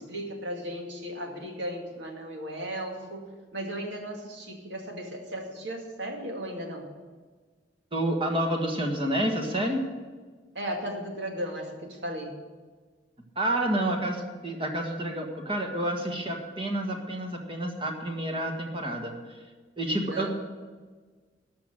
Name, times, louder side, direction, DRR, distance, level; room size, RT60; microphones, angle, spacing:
voice 1, 0.0-6.8 10.5-12.3 20.1-20.3, equal, 75° right, 2 dB, 2.2 m, -36 dB
voice 2, 7.9-9.9 13.4-19.1 19.8-20.3, right 1 dB, 30° right, 3 dB, 1.6 m, -29 dB
13.0 x 6.0 x 8.9 m, 1.4 s
head